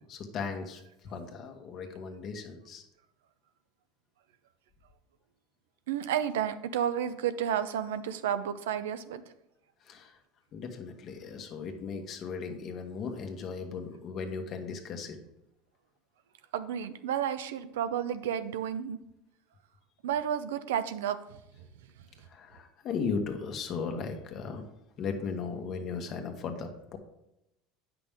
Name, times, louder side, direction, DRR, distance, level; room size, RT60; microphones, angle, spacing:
voice 1, 0.1-2.8 9.9-10.1 10.5-15.2 22.3-24.6 25.0-27.0, left 5 dB, 45° left, 5 dB, 1.3 m, -37 dB
voice 2, 5.9-9.2 16.5-19.0 20.0-21.2, right 9 dB, 90° right, 12 dB, 0.5 m, -31 dB
8.6 x 6.0 x 3.6 m, 0.85 s
supercardioid pair, 110°, 0 cm